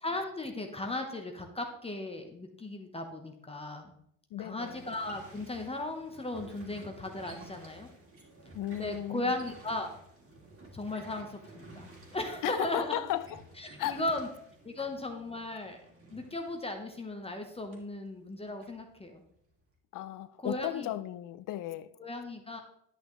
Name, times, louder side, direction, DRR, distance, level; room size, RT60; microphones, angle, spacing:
voice 1, 0.0-3.9 4.4-7.9 8.8-10.0 10.7-13.0 13.6-14.3 14.6-15.8 16.1-19.2 20.4-20.9 22.0-22.6, left 2 dB, 15° left, 1.1 m, -36 dB
voice 2, 4.3-4.9 8.5-9.3 12.4-13.4 13.8-14.0 14.8-14.9 19.9-21.9, left 13 dB, 55° left, 0.7 m, -35 dB
sound 1, 4.6-17.9 18.2-19.5, right 1 dB, 35° right, 2.6 m, -53 dB
10.5 x 6.2 x 3.1 m
supercardioid pair, 95°, 38 cm